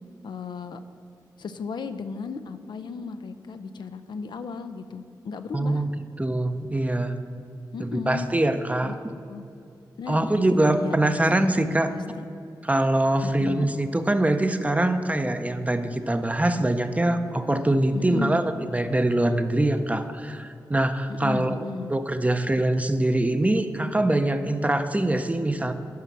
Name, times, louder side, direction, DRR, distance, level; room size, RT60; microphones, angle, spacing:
voice 1, 0.2-0.8 1.4-5.8 7.7-8.3 8.8-9.4 10.0-12.3 13.2-13.7 17.9-18.4 21.1-21.9, left 5 dB, 70° left, 9 dB, 0.5 m, -35 dB
voice 2, 5.5-5.9 6.2-7.1 7.8-9.0 10.1-11.9 12.6-25.7, right 1 dB, 20° right, 9 dB, 0.7 m, -23 dB
9.4 x 5.6 x 6.1 m, 2.6 s
cardioid pair, 45°, 8 cm